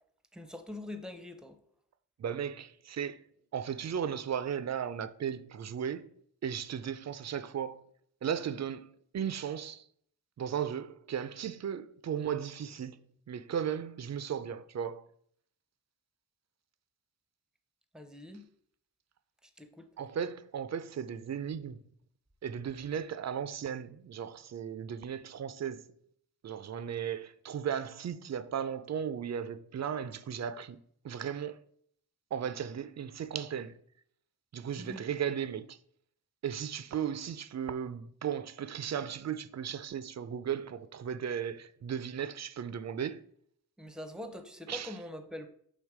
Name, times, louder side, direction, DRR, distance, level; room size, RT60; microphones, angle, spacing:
voice 1, 0.3-1.6 17.9-18.5 19.6-19.9 34.8-35.0 43.8-45.5, left 1 dB, ahead, 0.6 m, -43 dB
voice 2, 2.2-3.2 3.5-6.1 6.4-7.8 8.2-9.8 10.4-15.1 20.0-21.8 22.4-25.8 26.4-30.8 31.0-31.6 32.3-33.7 34.5-35.8 36.4-43.2 44.7-45.0, right 8 dB, 50° right, 0.4 m, -36 dB
7.3 x 3.4 x 4.7 m
wide cardioid pair, 140°, 35 cm